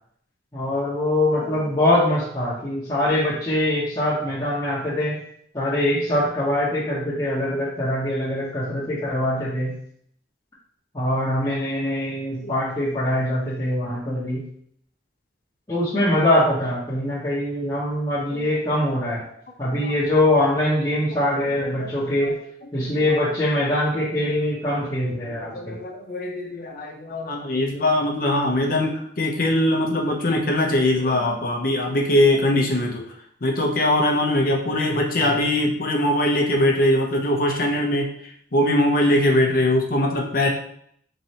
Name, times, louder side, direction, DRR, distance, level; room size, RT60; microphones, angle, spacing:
voice 1, 0.5-5.2 5.5-9.8 10.9-14.5 15.7-19.2 19.6-22.4 22.7-25.8, left 1 dB, 20° left, -11 dB, 1.0 m, -23 dB
voice 2, 21.3-21.9 25.2-33.0 33.4-40.5, left 1 dB, 50° left, 1 dB, 0.7 m, -22 dB
4.0 x 3.2 x 2.8 m, 0.66 s
head